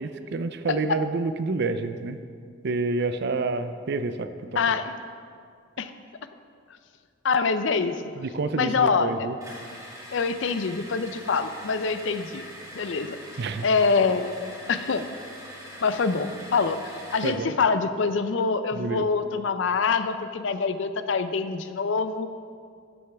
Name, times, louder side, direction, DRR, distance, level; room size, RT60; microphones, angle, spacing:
voice 1, 0.0-2.2 2.6-4.3 8.2-9.4 13.4-13.6 17.2-17.5 18.8-19.0, right 3 dB, 60° right, 10 dB, 0.5 m, -28 dB
voice 2, 4.5-4.9 5.8-5.9 7.2-8.0 8.5-9.3 10.1-12.4 12.7-13.2 13.6-15.0 15.8-22.3, left 5 dB, 70° left, 10 dB, 0.5 m, -25 dB
sound 1, 9.4-17.4, equal, 15° right, 2.2 m, -43 dB
12.5 x 8.0 x 3.4 m, 2.2 s
head